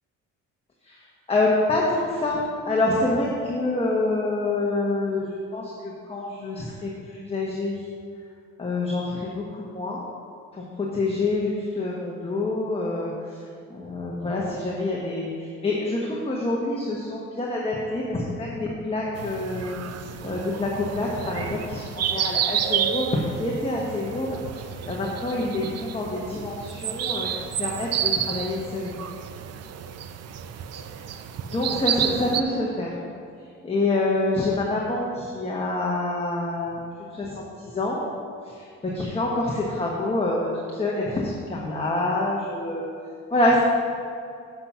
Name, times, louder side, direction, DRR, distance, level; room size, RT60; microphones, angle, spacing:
voice 1, 1.3-7.8 8.6-10.0 10.8-13.1 13.7-19.8 20.2-27.3 27.6-29.0 31.5-33.0 33.6-36.8 37.1-38.0 38.5-42.9 43.3-43.6, left 2 dB, 20° left, -3 dB, 1.2 m, -26 dB
sound 1, 19.1-32.4, right 9 dB, 55° right, 0.5 m, -30 dB
7.9 x 5.9 x 5.7 m, 2.3 s
cardioid pair, 90°, 30 cm